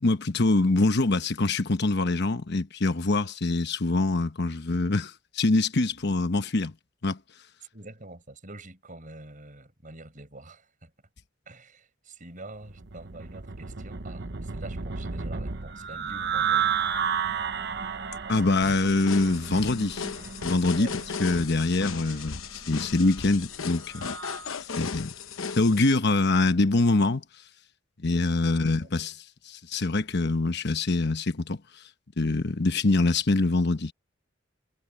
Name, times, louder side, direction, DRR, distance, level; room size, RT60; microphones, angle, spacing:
voice 1, 0.0-6.7 7.0-7.2 18.3-20.1 20.4-20.9 21.2-24.0 24.8-25.1 25.6-27.2 28.0-31.6 32.2-33.9, left 2 dB, 55° left, 1.1 m, -24 dB
voice 2, 7.7-10.9 11.5-16.8 20.8-21.0 28.4-28.9, right 2 dB, 40° right, 5.7 m, -46 dB
sound 1, 12.6-24.5, right 7 dB, 55° right, 1.0 m, -33 dB
sound 2, 18.6-25.8, left 5 dB, 85° left, 0.9 m, -36 dB
head